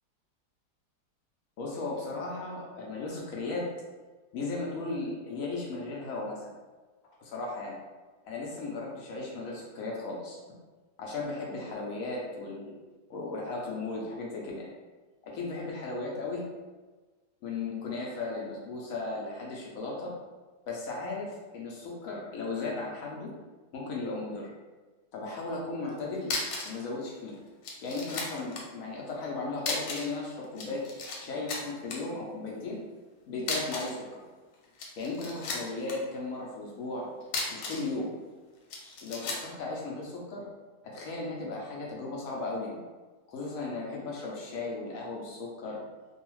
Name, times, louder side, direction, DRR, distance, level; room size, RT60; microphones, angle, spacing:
voice 1, 1.6-3.7 4.3-6.5 7.2-7.7 8.2-10.4 11.0-12.7 13.1-14.7 15.2-16.5 17.4-20.1 20.7-23.3 23.7-24.5 25.1-26.3 26.6-27.4 27.8-30.8 31.2-32.8 33.3-34.2 35.0-37.1 37.5-38.1 39.0-40.5 40.8-42.8 43.3-45.8, left 3 dB, 70° left, -2 dB, 0.8 m, -36 dB
sound 1, 25.9-26.0 26.2-26.8 27.1-27.2 27.6-28.6 29.6-30.2 30.4-31.2 31.5-32.0 33.4-34.0 34.6-35.9 37.2-37.9 38.7-39.5, left 3 dB, 90° left, 1.3 m, -34 dB
2.7 x 2.3 x 3.0 m, 1.3 s
omnidirectional pair, 1.9 m